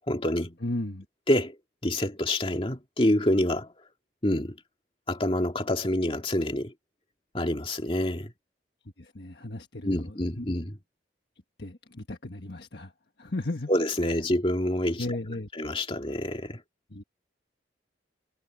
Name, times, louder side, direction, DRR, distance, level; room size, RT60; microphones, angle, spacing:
voice 1, 0.1-0.6 1.3-1.6 1.8-3.7 4.2-4.5 5.1-6.7 7.3-8.3 9.8-10.8 13.7-15.1 15.6-16.6, left 1 dB, 30° left, 2.2 m, -27 dB
voice 2, 0.6-1.1 9.0-10.4 11.6-12.9 13.2-13.7 15.0-15.5 16.9-17.0, left 2 dB, 65° left, 1.5 m, -35 dB
head